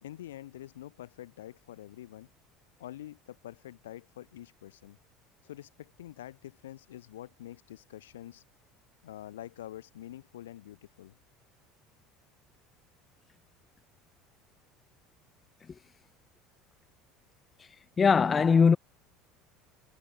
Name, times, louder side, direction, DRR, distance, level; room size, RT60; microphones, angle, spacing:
voice 1, 0.0-2.3 2.8-5.0 5.4-8.4 9.0-11.2, left 13 dB, 90° left, 3.0 m, -46 dB
voice 2, 18.0-18.8, left 5 dB, 30° left, 0.4 m, -20 dB
hypercardioid pair, 85°, 0 cm